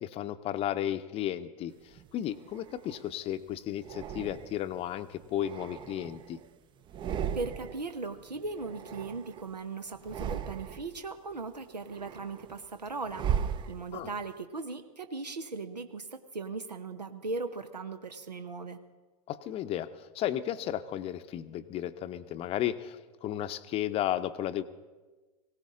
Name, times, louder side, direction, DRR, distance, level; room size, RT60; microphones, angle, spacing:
voice 1, 0.0-6.4 13.9-14.1 19.3-24.6, left 11 dB, 30° left, 12 dB, 0.7 m, -34 dB
sound 1, 1.9-3.1 3.8-4.8 5.2-6.5 6.8-7.9 8.2-9.6 10.0-11.0 11.5-14.2, right 8 dB, 25° right, 0.6 m, -37 dB
voice 2, 7.3-18.8, right 3 dB, 85° right, 9 dB, 0.9 m, -38 dB
19.5 x 17.5 x 3.7 m, 1.2 s
figure-of-eight pair, 95°, 21 cm